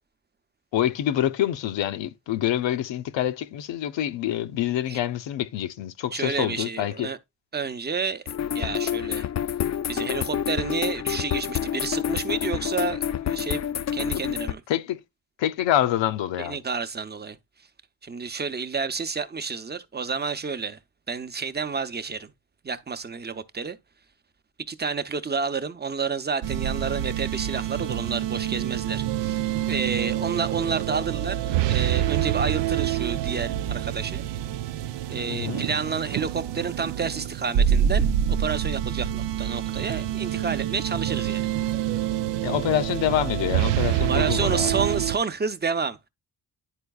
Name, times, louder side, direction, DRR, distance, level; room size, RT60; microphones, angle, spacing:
voice 1, 0.7-7.1 14.1-14.2 14.7-15.0 15.4-16.6 35.3-35.7 42.4-44.9, left 12 dB, 85° left, 0.7 m, -26 dB
voice 2, 6.1-7.2 7.5-8.2 8.5-9.3 9.9-14.6 16.4-17.4 18.0-20.8 21.1-22.3 22.6-23.8 24.7-29.4 29.7-34.2 35.1-38.1 38.4-41.5 44.1-46.0, right 5 dB, 25° right, 0.7 m, -30 dB
sound 1, 8.3-14.5, left 9 dB, 40° left, 0.4 m, -28 dB
sound 2, 26.4-45.2, right 11 dB, 75° right, 0.5 m, -26 dB
10.0 x 4.5 x 2.3 m
cardioid pair, 75°, 43 cm